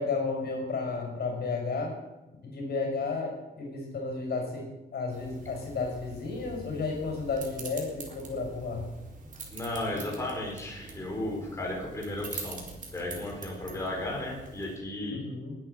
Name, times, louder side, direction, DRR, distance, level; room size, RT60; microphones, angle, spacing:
voice 1, 0.0-1.9 2.4-4.7 4.9-8.9 15.1-15.6, left 4 dB, 65° left, 2 dB, 5.7 m, -32 dB
sound 1, 5.1-14.8, right 3 dB, 45° right, 3.9 m, -44 dB
voice 2, 9.5-12.6 12.9-15.2, left 1 dB, 15° left, -2 dB, 4.7 m, -34 dB
20.5 x 9.7 x 6.8 m, 1.1 s
wide cardioid pair, 145°, 18 cm